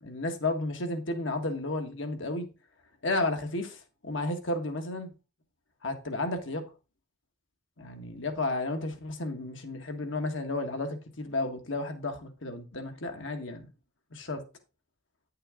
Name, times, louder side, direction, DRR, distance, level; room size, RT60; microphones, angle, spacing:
voice 1, 0.0-2.5 3.0-5.1 5.8-6.7 7.8-13.7 14.1-14.4, left 2 dB, 75° left, 1.7 m, -32 dB
10.0 x 6.6 x 3.8 m
head